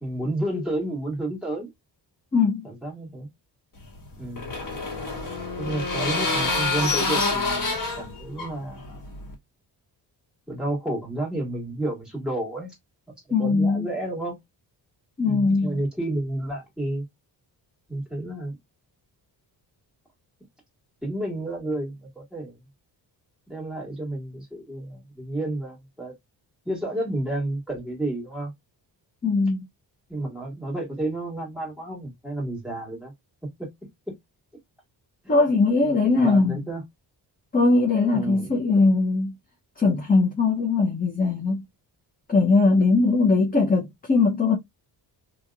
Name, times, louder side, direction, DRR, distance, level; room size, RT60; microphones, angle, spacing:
voice 1, 0.0-1.7 2.6-3.3 4.2-4.5 5.6-8.8 10.5-12.7 13.4-14.3 15.2-17.0 17.9-18.6 21.0-22.6 23.5-26.1 26.7-28.5 30.1-33.1 33.6-33.7 35.2-35.4 36.1-36.8 38.1-38.6, right 1 dB, ahead, 1.9 m, -31 dB
sound 1, 3.8-9.3, left 3 dB, 50° left, 1.6 m, -27 dB
voice 2, 13.3-13.9 15.2-15.8 29.2-29.6 35.3-36.6 37.5-39.3 39.8-41.6 42.3-44.6, left 3 dB, 20° left, 0.7 m, -20 dB
2.9 x 2.8 x 2.3 m
cardioid pair, 130°, 42 cm